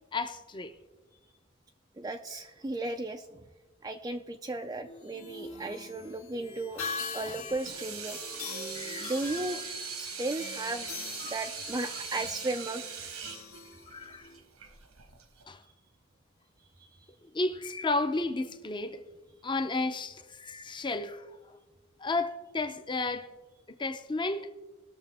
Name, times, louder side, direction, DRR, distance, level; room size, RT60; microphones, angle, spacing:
voice 1, 0.1-0.7 8.4-9.1 11.2-11.4 13.9-14.3 15.5-15.6 17.3-19.0 19.4-21.2 22.0-23.3 23.8-24.5, left 3 dB, 20° left, 0.6 m, -32 dB
voice 2, 2.0-3.4 3.8-6.8 7.1-8.2 9.0-10.9 11.3-13.0 16.8-17.1, right 2 dB, 15° right, 0.4 m, -35 dB
sound 1, 4.8-14.4, left 4 dB, 80° left, 1.8 m, -42 dB
Water tap faucet / Sink (filling or washing), 7.4-15.4, right 5 dB, 90° right, 1.5 m, -41 dB
19.0 x 6.7 x 3.5 m
head